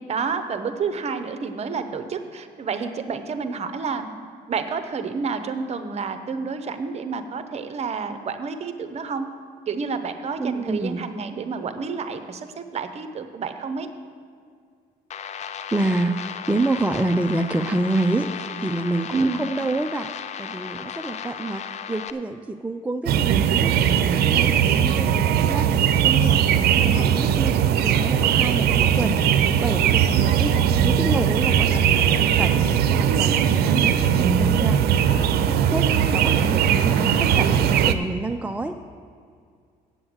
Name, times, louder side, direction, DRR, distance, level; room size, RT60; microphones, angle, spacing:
voice 1, 0.1-4.1 4.5-9.3 9.7-13.9 19.1-19.5 30.2-30.9, right 5 dB, 40° right, 9 dB, 0.8 m, -29 dB
voice 2, 10.4-11.0 15.7-20.1 20.4-24.5 24.8-25.7 26.0-27.5 27.8-30.6 30.8-34.8 35.1-38.8, right 2 dB, 10° right, 6 dB, 0.4 m, -28 dB
sound 1, 15.1-22.1, left 8 dB, 40° left, 0.5 m, -35 dB
sound 2, 23.1-37.9, right 9 dB, 70° right, 0.6 m, -19 dB
8.1 x 7.6 x 7.8 m, 2.1 s
cardioid pair, 110°, 17 cm